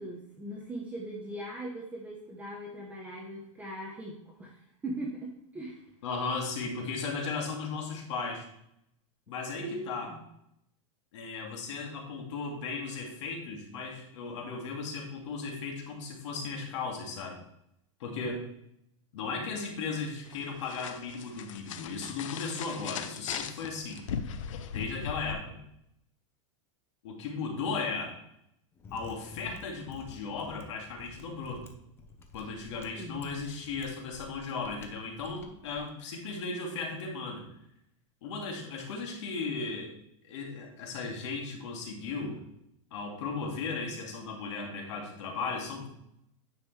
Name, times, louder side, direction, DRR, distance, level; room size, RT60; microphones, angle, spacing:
voice 1, 0.0-4.6 4.8-5.8 9.6-10.2 33.0-33.4, right 1 dB, 10° right, -2 dB, 0.9 m, -40 dB
voice 2, 6.0-8.5 9.3-10.1 11.1-17.4 18.0-18.5 19.1-24.1 24.7-25.6 27.0-28.1 28.9-31.7 32.3-37.5 38.2-39.9 40.2-42.4 42.9-45.9, left 4 dB, 70° left, 1 dB, 2.2 m, -36 dB
sound 1, 20.3-25.3, left 7 dB, 85° left, 0.7 m, -39 dB
Mechanisms, 28.7-35.9, left 3 dB, 15° left, 0.7 m, -50 dB
9.7 x 5.2 x 3.3 m, 0.76 s
supercardioid pair, 160°, 16 cm